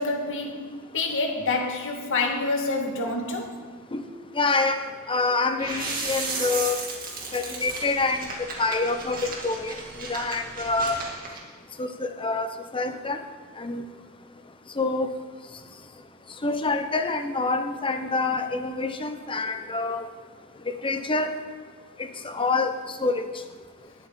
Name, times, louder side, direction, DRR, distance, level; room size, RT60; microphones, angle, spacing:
voice 1, 0.0-3.6, left 3 dB, 60° left, 1.9 m, -27 dB
voice 2, 4.3-6.8 7.3-8.3 8.6-11.0 11.8-13.2 13.6-13.8 14.8-15.1 16.4-20.1 20.8-21.3 22.0-22.7 23.0-23.3, left 3 dB, 25° left, 0.9 m, -26 dB
sound 1, 5.6-11.4, right 3 dB, 40° right, 2.4 m, -34 dB
19.5 x 7.7 x 3.9 m
head